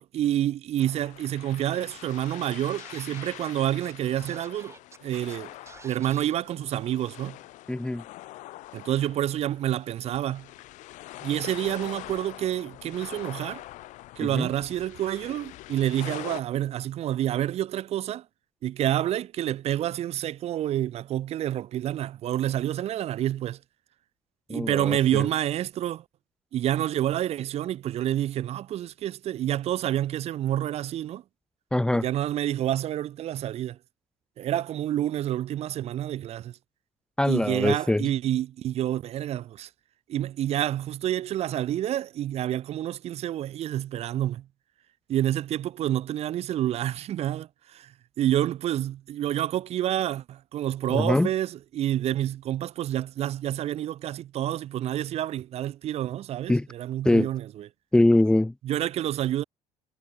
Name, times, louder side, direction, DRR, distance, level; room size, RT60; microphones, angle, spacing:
voice 1, 0.0-4.7 5.0-5.5 5.8-7.4 8.7-10.5 11.2-13.6 14.2-18.2 18.6-23.6 24.5-26.0 26.5-31.2 32.0-33.8 34.4-36.5 37.3-39.7 40.1-44.4 45.1-47.9 48.2-57.4 58.6-59.4, right 12 dB, 55° right, 1.2 m, -28 dB
sound 1, 0.8-16.4, left 17 dB, 70° left, 2.7 m, -44 dB
Scratching (performance technique), 2.8-3.4 3.8-3.9 4.3-5.4 5.7-6.3, right 4 dB, 20° right, 5.7 m, -48 dB
voice 2, 7.7-8.0 14.3-14.5 24.5-25.3 31.7-32.0 37.2-38.1 50.9-51.3 56.5-56.7 57.0-57.3 57.9-58.5, left 1 dB, 5° left, 0.7 m, -23 dB
cardioid pair, 120°, 13 cm